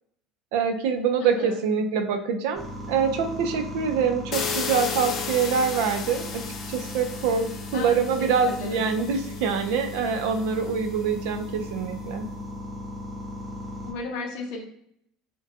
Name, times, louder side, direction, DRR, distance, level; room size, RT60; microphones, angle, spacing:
voice 1, 0.5-12.3, right 6 dB, 80° right, 6 dB, 0.4 m, -25 dB
sound 1, 2.5-13.9, left 1 dB, ahead, 0.6 m, -37 dB
sound 2, 4.3-11.1, left 6 dB, 35° left, 0.3 m, -35 dB
voice 2, 8.2-8.8 13.8-14.6, left 3 dB, 65° left, 2 dB, 0.6 m, -34 dB
2.6 x 2.1 x 2.5 m, 0.69 s
cardioid pair, 160°, 0 cm